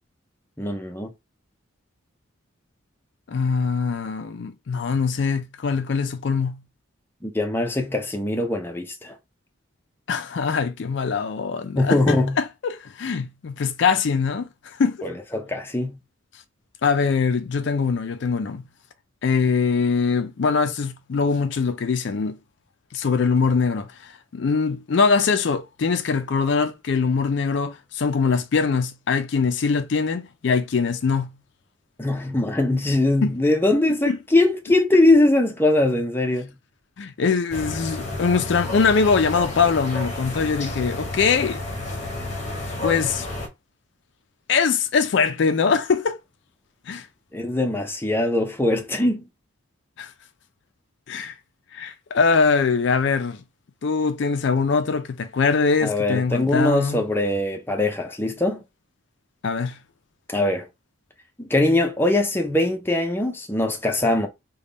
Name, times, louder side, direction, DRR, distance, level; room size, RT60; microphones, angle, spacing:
voice 1, 0.6-1.1 7.2-9.1 11.8-12.4 15.0-16.0 32.0-36.5 47.3-49.2 55.8-58.6 60.3-60.7 61.4-64.3, left 2 dB, 10° left, 0.5 m, -21 dB
voice 2, 3.3-6.6 10.1-15.0 16.8-18.6 19.2-22.4 22.9-31.3 33.2-33.3 34.1-34.2 37.0-41.6 42.8-43.3 44.5-46.2 46.9-47.1 50.0-50.1 51.1-51.3 51.7-53.4 53.8-57.0 59.4-59.8, left 5 dB, 60° left, 0.4 m, -22 dB
sound 1, 37.5-43.5, left 2 dB, 35° left, 0.8 m, -31 dB
3.5 x 2.2 x 3.9 m
head